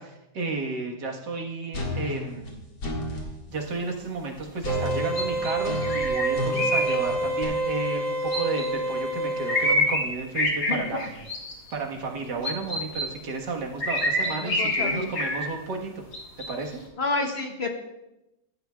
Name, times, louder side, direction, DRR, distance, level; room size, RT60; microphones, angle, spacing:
voice 1, 0.0-2.6 3.5-11.1 11.7-16.0 16.4-16.8, right 3 dB, 75° right, 1 dB, 2.1 m, -32 dB
sound 1, 1.7-3.3 4.6-7.4, left 1 dB, 85° left, 2.5 m, -32 dB
sound 2, 4.7-9.7, right 2 dB, 50° right, 2.4 m, -28 dB
sound 3, 5.2-6.9 8.3-8.7 9.5-10.1 10.3-11.7 12.4-13.0 13.8-15.5 16.1-16.5, left 1 dB, 65° left, 2.4 m, -26 dB
voice 2, 14.2-15.1 17.0-17.7, left 3 dB, 45° left, 3 dB, 1.0 m, -29 dB
15.0 x 11.5 x 2.3 m, 0.94 s
omnidirectional pair, 1.8 m